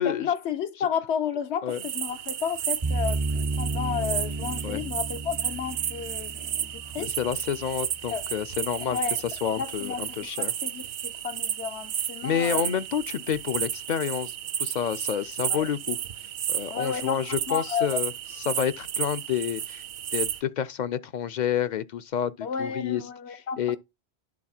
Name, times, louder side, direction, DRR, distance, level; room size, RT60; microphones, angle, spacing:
voice 1, 0.0-7.1 8.1-8.3 8.8-9.2 9.6-10.0 10.4-12.8 15.5-15.6 16.7-17.2 17.5-18.0 22.4-23.8, left 7 dB, 85° left, 1.1 m, -32 dB
sound 1, 1.7-20.4, right 10 dB, 75° right, 0.9 m, -33 dB
sound 2, 2.8-7.9, right 3 dB, 35° right, 0.3 m, -32 dB
voice 2, 7.0-9.0 9.4-10.5 12.2-16.0 16.5-18.1 18.5-19.8 20.1-23.0 23.3-23.8, left 8 dB, 55° left, 0.5 m, -29 dB
11.0 x 4.0 x 4.3 m
omnidirectional pair, 1.1 m